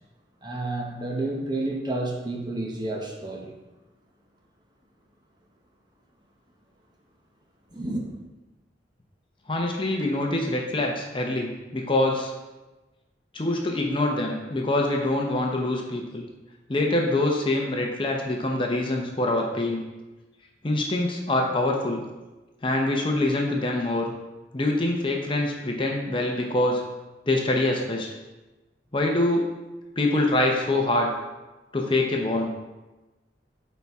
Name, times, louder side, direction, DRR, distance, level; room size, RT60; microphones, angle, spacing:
voice 1, 0.4-3.5 7.7-8.0, right 2 dB, 25° right, 0 dB, 0.8 m, -30 dB
voice 2, 9.5-12.3 13.3-16.3 16.7-19.8 20.6-22.0 22.6-24.1 24.5-26.8 27.3-28.1 28.9-29.4 30.0-31.1 31.7-32.5, left 2 dB, 25° left, 1 dB, 0.7 m, -25 dB
8.9 x 4.1 x 3.5 m, 1.1 s
head